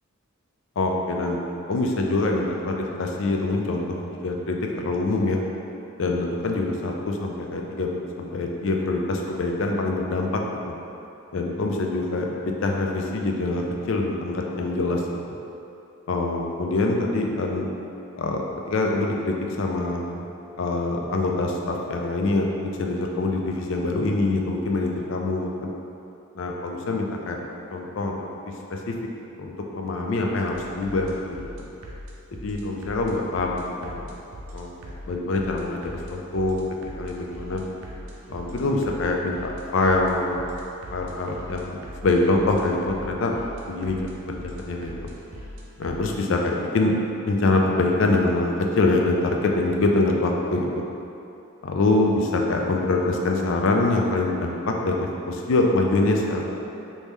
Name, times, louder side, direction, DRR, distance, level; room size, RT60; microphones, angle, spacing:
voice 1, 0.8-1.4 1.7-5.4 6.0-7.9 8.2-10.3 10.6-10.7 11.3-12.3 12.6-15.2 16.1-17.7 18.2-20.3 20.6-25.7 26.3-27.4 27.7-28.3 28.7-28.9 29.4-31.7 32.4-34.1 34.5-36.6 37.0-37.6 38.3-40.4 40.9-43.4 43.7-44.0 44.2-45.0 45.8-47.0 47.2-50.8 51.6-56.5, left 2 dB, 65° left, 1 dB, 0.4 m, -24 dB
sound 1, 30.5-46.2, equal, 90° right, 0.5 m, -41 dB
3.5 x 2.7 x 3.1 m, 2.8 s
head